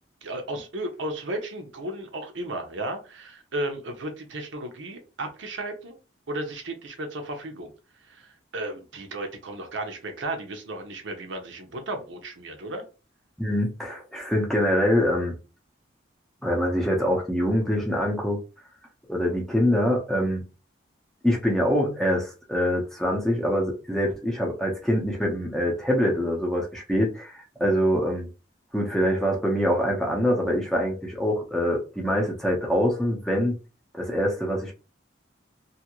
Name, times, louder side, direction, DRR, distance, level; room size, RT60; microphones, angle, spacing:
voice 1, 0.2-6.0 6.3-7.7 8.0-12.8, right 1 dB, 80° right, 0.7 m, -34 dB
voice 2, 13.4-15.4 16.4-18.4 19.1-20.4 21.2-28.3 28.7-33.6 34.0-34.7, equal, ahead, 0.7 m, -24 dB
2.7 x 2.5 x 2.9 m
head